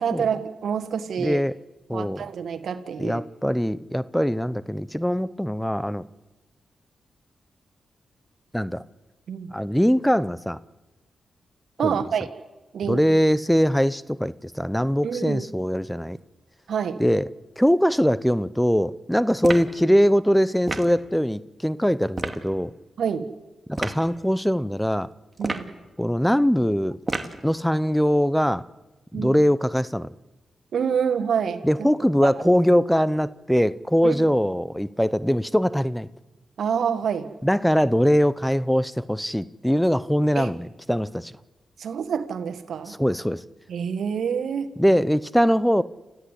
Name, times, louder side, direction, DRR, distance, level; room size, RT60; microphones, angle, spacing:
voice 1, 0.0-1.4 1.9-3.2 9.3-9.5 11.8-12.3 12.7-13.0 15.0-15.5 16.7-17.0 23.0-23.3 25.4-25.7 29.1-29.4 30.7-31.6 32.2-32.3 34.0-34.3 36.6-37.3 40.3-40.5 41.8-42.9 43.7-44.7, right 7 dB, 75° right, 9 dB, 1.6 m, -27 dB
voice 2, 1.2-1.5 1.9-2.2 3.0-6.0 8.5-8.8 9.5-10.6 11.8-11.9 12.9-16.2 17.0-17.2 17.6-22.7 23.7-25.1 26.0-27.0 27.4-28.6 29.1-30.1 31.6-36.1 37.4-41.3 42.9-43.4 44.8-45.8, equal, 5° left, 17 dB, 0.7 m, -22 dB
sound 1, 19.4-19.8 20.7-21.0 22.1-22.4 23.7-24.0 25.4-25.8 27.1-27.4, right 2 dB, 25° right, 2.4 m, -29 dB
29.5 x 14.0 x 8.3 m, 1.2 s
cardioid pair, 55°, 0 cm